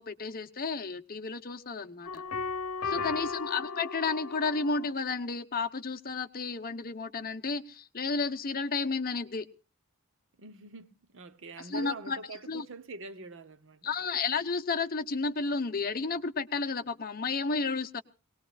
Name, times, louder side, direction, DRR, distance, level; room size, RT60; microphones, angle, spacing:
voice 1, 0.0-2.2 2.8-9.5 11.6-12.2 12.5-12.7 13.8-18.0, left 4 dB, 40° left, 1.0 m, -32 dB
sound 1, 2.1-4.9, left 5 dB, 75° left, 1.0 m, -35 dB
voice 2, 2.8-3.3 10.4-13.9, right 3 dB, 60° right, 0.9 m, -45 dB
22.0 x 19.0 x 2.5 m
head